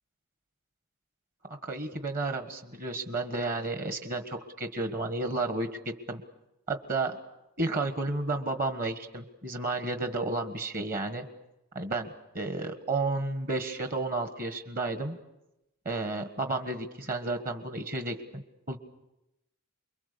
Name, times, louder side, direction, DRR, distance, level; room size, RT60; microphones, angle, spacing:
voice 1, 1.6-5.7 6.1-6.2 6.7-7.2 7.6-11.2 11.7-15.2 15.8-18.4 18.7-18.8, right 2 dB, 40° right, 7 dB, 1.5 m, -32 dB
29.0 x 22.5 x 6.9 m, 0.91 s
head